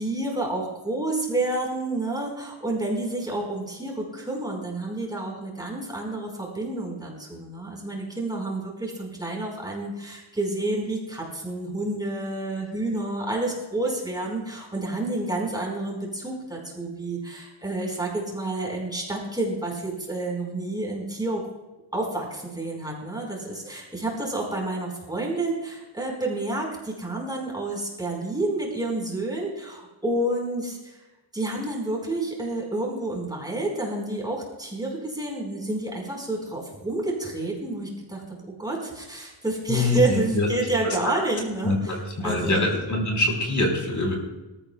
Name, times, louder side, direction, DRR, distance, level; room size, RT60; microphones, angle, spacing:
voice 1, 0.0-21.4 21.9-31.0 31.3-42.0 42.2-42.6, right 2 dB, 10° right, -2 dB, 4.6 m, -29 dB
voice 2, 39.7-40.5 40.8-41.0 41.6-44.1, left 2 dB, 40° left, 1 dB, 4.3 m, -24 dB
26.5 x 14.0 x 2.3 m, 1.0 s
wide cardioid pair, 135°, 48 cm